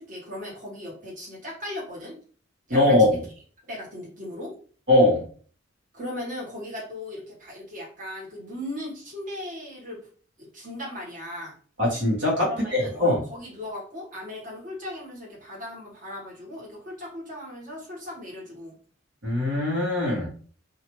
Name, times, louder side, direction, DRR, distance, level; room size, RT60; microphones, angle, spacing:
voice 1, 0.0-2.1 2.7-3.2 3.7-4.5 5.9-10.0 10.4-11.5 12.4-18.7, left 1 dB, 45° right, -5 dB, 1.4 m, -37 dB
voice 2, 2.7-3.2 4.9-5.2 11.8-13.2 19.2-20.3, left 1 dB, 65° right, -4 dB, 1.3 m, -21 dB
2.8 x 2.4 x 3.0 m, 0.42 s
head